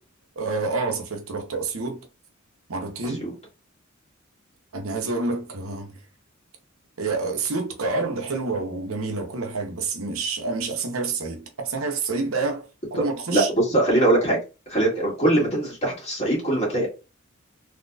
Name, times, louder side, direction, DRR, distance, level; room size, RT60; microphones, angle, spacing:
voice 1, 0.4-2.1 2.7-3.2 4.7-6.0 7.0-13.5, right 3 dB, 85° right, 0.9 m, -28 dB
voice 2, 13.3-14.4 14.7-16.9, right 1 dB, 30° left, 1.9 m, -21 dB
4.0 x 2.9 x 2.3 m
head